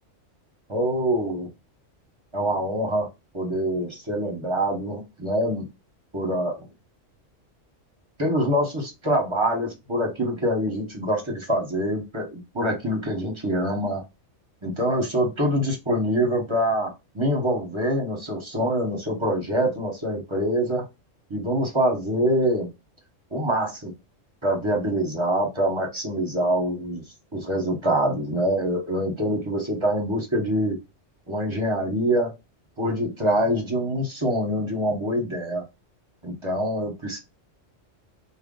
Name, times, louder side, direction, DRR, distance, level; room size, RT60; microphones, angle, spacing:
voice 1, 0.7-1.5 2.3-3.1 3.3-5.7 6.1-6.7 8.2-14.0 14.6-20.8 21.3-22.7 23.3-23.9 24.4-27.0 27.3-30.8 31.3-32.3 32.8-35.6 36.2-37.2, equal, 25° right, 0.9 m, -25 dB
3.8 x 2.2 x 3.7 m
omnidirectional pair, 1.3 m